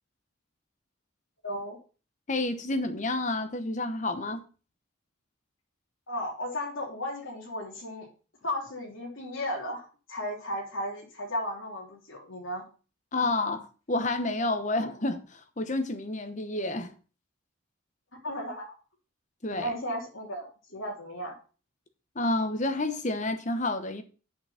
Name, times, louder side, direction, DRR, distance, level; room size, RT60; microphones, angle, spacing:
voice 1, 1.4-1.8 6.1-8.1 8.4-12.6 18.2-18.7 19.5-21.3, equal, 70° left, 3.1 m, -35 dB
voice 2, 2.3-4.4 13.1-16.9 19.4-19.7 22.2-24.0, left 2 dB, 35° left, 1.0 m, -29 dB
7.7 x 6.0 x 5.7 m
head